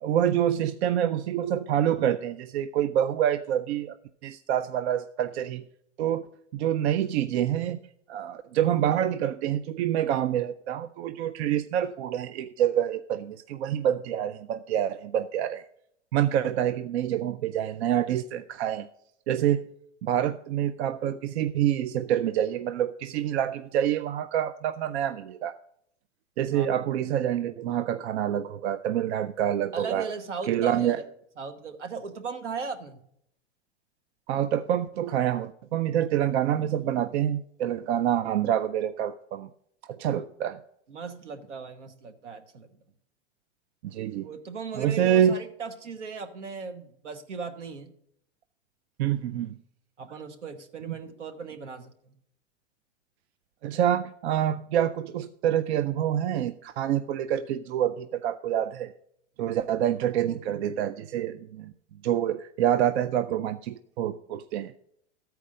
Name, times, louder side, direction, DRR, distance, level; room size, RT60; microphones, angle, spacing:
voice 1, 0.0-4.0 4.2-5.6 6.0-6.3 6.5-7.8 8.1-15.6 16.1-18.9 19.3-19.7 20.0-25.6 26.4-30.1 30.5-31.0 34.3-39.5 39.9-40.6 43.8-44.3 44.7-45.4 49.0-49.5 50.9-51.0 53.6-58.9 59.4-61.7 62.0-64.7, right 10 dB, 65° right, 11 dB, 0.5 m, -27 dB
voice 2, 29.7-30.9 31.4-33.0 40.0-40.2 40.9-42.7 44.2-47.9 50.0-52.1, right 5 dB, 90° right, 9 dB, 1.3 m, -38 dB
13.5 x 4.6 x 6.3 m, 0.71 s
hypercardioid pair, 100°, 35 cm